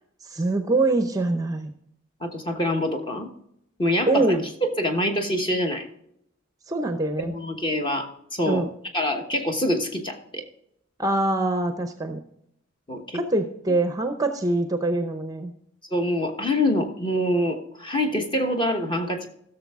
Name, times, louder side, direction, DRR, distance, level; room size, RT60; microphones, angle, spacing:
voice 1, 0.2-1.7 4.1-4.5 6.7-7.3 8.5-8.7 11.0-12.2 13.1-15.5, right 2 dB, 15° right, 7 dB, 0.6 m, -24 dB
voice 2, 2.2-3.3 3.8-5.8 7.2-8.6 8.9-10.4 12.9-13.2 13.7-13.8 15.9-19.3, left 1 dB, 25° left, 4 dB, 1.2 m, -25 dB
15.5 x 6.8 x 3.6 m, 0.75 s
head